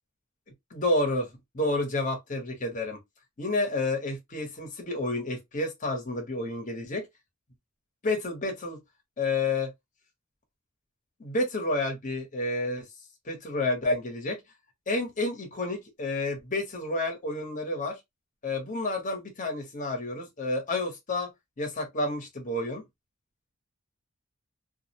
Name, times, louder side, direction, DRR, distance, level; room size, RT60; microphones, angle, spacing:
voice 1, 0.7-3.0 3.4-7.0 8.0-8.8 9.2-9.7 11.2-12.8 13.2-14.4 14.9-18.0 18.4-21.3 21.6-22.8, left 2 dB, 40° left, 0.9 m, -30 dB
2.4 x 2.1 x 2.8 m
head